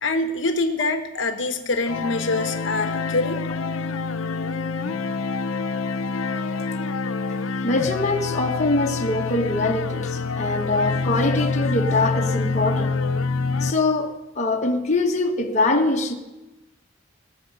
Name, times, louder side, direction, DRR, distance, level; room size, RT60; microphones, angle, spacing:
voice 1, 0.0-3.4, left 2 dB, 60° left, 1.0 m, -25 dB
sound 1, 1.9-13.7, left 4 dB, 90° left, 0.6 m, -26 dB
voice 2, 7.6-12.9 13.6-16.1, left 2 dB, 35° left, 1.0 m, -23 dB
18.5 x 6.4 x 8.0 m
head